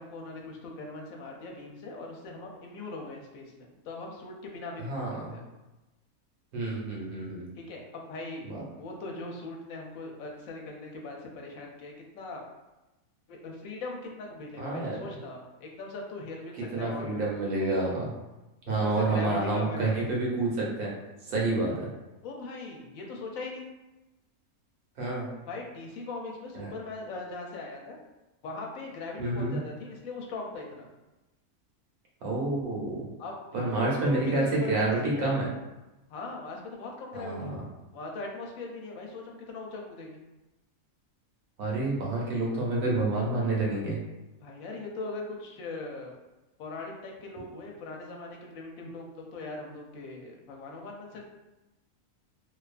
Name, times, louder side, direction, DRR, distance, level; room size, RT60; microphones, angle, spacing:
voice 1, 0.0-5.4 7.6-12.4 13.3-17.3 18.7-19.9 22.2-23.7 25.5-28.0 28.4-30.9 33.2-35.3 36.1-37.6 37.9-40.2 44.4-46.1 46.6-51.2, left 3 dB, 75° left, 0 dB, 1.0 m, -40 dB
voice 2, 4.8-5.4 6.5-7.5 8.4-8.6 14.6-15.0 16.7-18.1 18.7-20.9 21.2-21.9 25.0-25.3 26.5-26.7 29.2-29.6 32.2-33.1 33.5-35.5 37.1-37.6 41.6-44.0, right 2 dB, 75° right, -3 dB, 1.2 m, -29 dB
2.7 x 2.3 x 2.4 m, 1.0 s
omnidirectional pair, 1.5 m